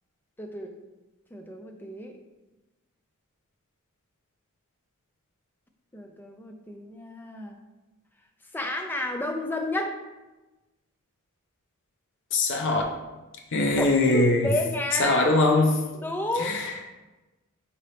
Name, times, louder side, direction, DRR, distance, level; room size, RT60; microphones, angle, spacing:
voice 1, 0.4-0.7 1.3-2.1 5.9-7.6 8.5-10.0 13.8-15.5 16.0-16.7, left 1 dB, 10° left, 3 dB, 0.4 m, -31 dB
voice 2, 12.3-12.8 13.5-14.5 15.0-15.8 16.4-16.8, left 2 dB, 55° left, 2 dB, 0.6 m, -22 dB
5.1 x 2.7 x 3.3 m, 1.1 s
head